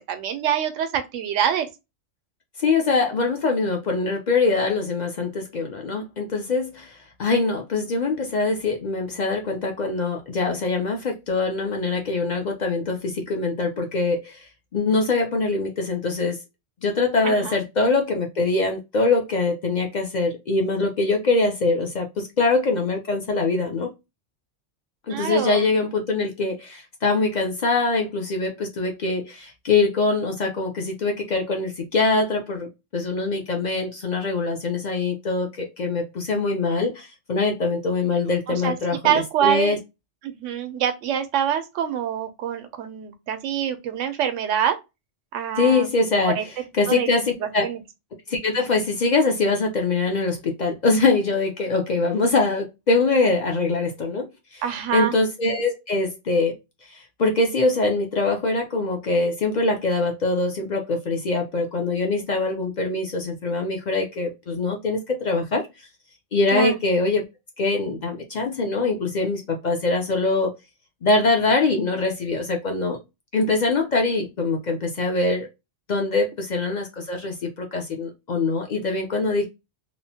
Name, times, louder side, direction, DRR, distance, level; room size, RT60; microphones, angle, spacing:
voice 1, 0.1-1.7 17.2-17.6 25.1-25.6 38.5-38.8 39.0-39.8 40.2-44.8 45.3-45.9 46.2-46.5 46.9-47.8 54.6-55.1 66.5-66.8, right 9 dB, 85° right, 0.9 m, -25 dB
voice 2, 2.6-14.5 14.7-16.4 16.8-23.9 25.1-39.8 45.6-47.7 48.3-54.6 54.9-56.6 56.9-65.6 66.3-67.2 67.6-70.5 71.0-73.0 73.3-75.5 75.9-79.5, left 3 dB, 50° left, 0.5 m, -23 dB
3.0 x 2.1 x 2.7 m
omnidirectional pair, 1.3 m